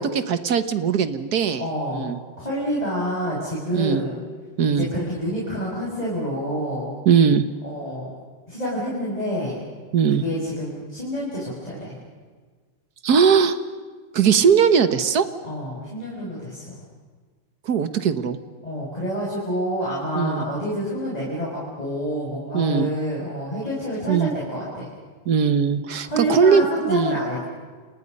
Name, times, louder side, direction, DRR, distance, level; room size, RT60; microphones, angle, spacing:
voice 1, 0.0-1.6 1.9-2.2 3.7-4.0 4.6-4.9 7.0-7.4 9.9-10.2 13.0-13.6 14.1-15.3 17.6-18.4 20.1-20.5 22.5-22.9 24.1-24.3 25.2-27.2, right 7 dB, 55° right, 11 dB, 1.5 m, -19 dB
voice 2, 1.6-2.1 2.4-4.2 4.8-6.9 7.6-8.1 8.5-9.6 10.1-12.0 15.4-16.8 18.6-24.9 26.0-27.4, equal, 15° left, -6 dB, 6.7 m, -28 dB
30.0 x 28.5 x 5.5 m, 1.5 s
omnidirectional pair, 2.3 m